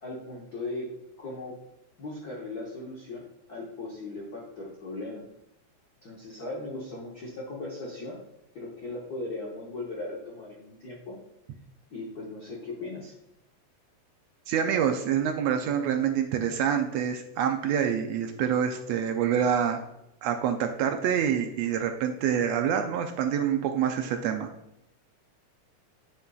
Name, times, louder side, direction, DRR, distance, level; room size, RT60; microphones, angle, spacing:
voice 1, 0.0-1.6 2.0-5.2 6.0-8.2 8.5-11.2 11.9-13.1, left 2 dB, 65° left, -3 dB, 0.9 m, -38 dB
voice 2, 14.5-19.8 20.2-24.5, right 8 dB, 80° right, 5 dB, 1.6 m, -26 dB
9.9 x 5.3 x 2.3 m, 0.84 s
omnidirectional pair, 3.3 m